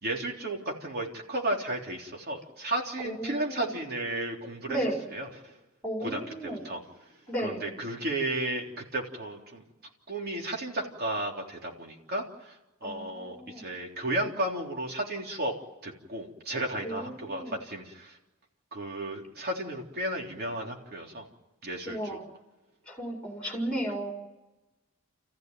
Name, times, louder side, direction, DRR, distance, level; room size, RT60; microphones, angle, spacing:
voice 1, 0.0-4.8 5.1-5.5 6.0-6.8 7.4-9.6 10.1-12.6 12.8-15.5 15.8-18.2 18.7-21.3 21.6-22.2, right 1 dB, 45° right, 0 dB, 3.5 m, -33 dB
voice 2, 3.0-3.6 4.7-5.0 5.8-6.6 7.3-7.6 12.8-13.6 16.8-17.5 21.9-22.2 22.9-24.1, right 1 dB, 5° left, 0 dB, 4.7 m, -34 dB
29.0 x 15.0 x 9.3 m, 1.1 s
head